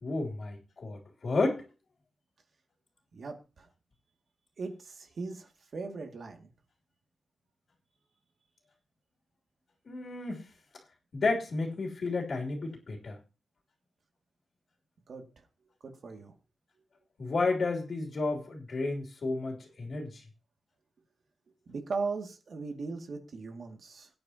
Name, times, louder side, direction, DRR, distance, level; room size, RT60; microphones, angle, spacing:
voice 1, 0.0-1.6 9.9-10.4 11.1-13.2 17.2-20.2, left 3 dB, 60° left, 3.0 m, -32 dB
voice 2, 3.1-3.7 4.6-6.5 15.1-15.2 15.8-16.3 21.7-24.1, right 4 dB, 70° right, 2.2 m, -38 dB
21.5 x 9.7 x 2.9 m
wide cardioid pair, 125°, 0 cm